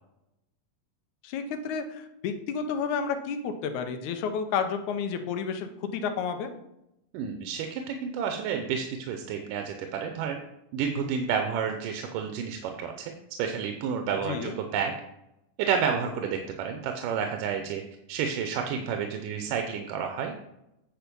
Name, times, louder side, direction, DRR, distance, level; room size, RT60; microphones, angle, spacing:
voice 1, 1.2-6.5 14.2-14.5, left 6 dB, 75° left, 7 dB, 2.1 m, -31 dB
voice 2, 7.1-10.4 10.7-13.1 13.4-15.0 15.6-17.8 18.1-20.5, right 7 dB, 90° right, 5 dB, 2.3 m, -30 dB
9.1 x 4.9 x 5.2 m, 0.85 s
omnidirectional pair, 3.7 m